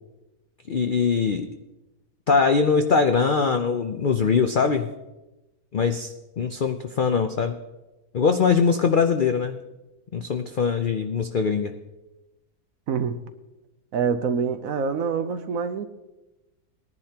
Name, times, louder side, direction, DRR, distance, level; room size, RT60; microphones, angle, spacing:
voice 1, 0.7-1.5 2.3-4.9 5.7-7.6 8.1-9.6 10.1-11.8, left 5 dB, 90° left, 6 dB, 0.4 m, -22 dB
voice 2, 12.9-13.2 13.9-15.8, right 6 dB, 65° right, 10 dB, 1.1 m, -26 dB
20.0 x 11.0 x 2.9 m, 1.0 s
omnidirectional pair, 1.7 m